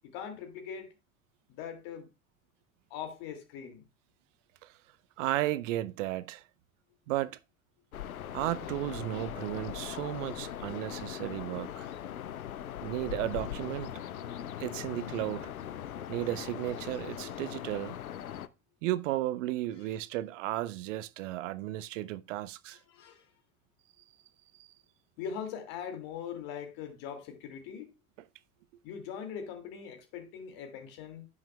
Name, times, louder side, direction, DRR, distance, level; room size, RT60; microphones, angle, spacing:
voice 1, 0.0-0.9 1.5-2.1 2.9-3.9 19.9-20.0 22.9-23.3 25.2-27.9 28.8-31.3, left 7 dB, 55° left, 2.4 m, -41 dB
voice 2, 5.2-6.4 7.1-7.4 8.3-11.9 12.8-13.9 14.6-15.5 16.1-18.0 18.8-22.8, right 15 dB, 60° right, 0.6 m, -34 dB
sound 1, 7.9-18.5, left 10 dB, 80° left, 0.6 m, -40 dB
14.5 x 6.0 x 2.2 m
figure-of-eight pair, 70°, 42 cm